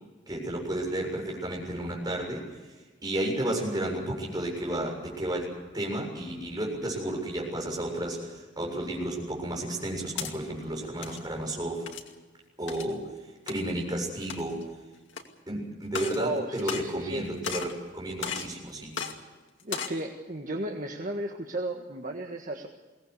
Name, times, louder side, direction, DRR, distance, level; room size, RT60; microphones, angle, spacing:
voice 1, 0.3-2.7 3.0-5.5 5.7-11.9 12.6-14.6 15.5-18.9, right 1 dB, 20° right, 0 dB, 7.2 m, -32 dB
sound 1, 10.2-10.3 10.9-11.2 11.9-12.1 12.7-12.9 13.5-13.6 14.2-14.6 15.1-15.2 15.8-16.2 16.5-17.2 17.4-17.8 18.2-18.5 18.9-19.1 19.6-20.0, left 6 dB, 80° left, 2.4 m, -35 dB
voice 2, 16.1-17.2 19.6-22.7, right 1 dB, 45° right, 2 dB, 1.6 m, -34 dB
22.5 x 18.5 x 8.3 m, 1.3 s
head